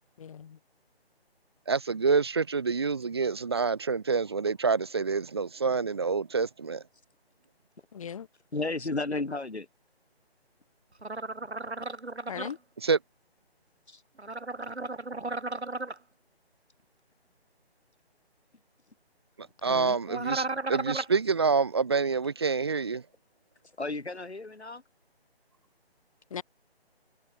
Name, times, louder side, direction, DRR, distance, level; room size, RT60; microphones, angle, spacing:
voice 1, 0.2-0.6 7.9-8.3 12.3-12.6 19.6-20.0 26.3-26.4, left 8 dB, 30° left, 4.5 m, -38 dB
voice 2, 1.7-6.8 12.8-13.0 19.6-23.0, right 5 dB, 25° right, 0.8 m, -27 dB
voice 3, 8.5-9.7 13.9-14.0 23.8-24.8, left 3 dB, 90° left, 5.0 m, -33 dB
sound 1, 11.0-12.5 14.2-16.0 20.1-21.2, right 2 dB, 85° right, 6.4 m, -34 dB
figure-of-eight pair, 165°, 32 cm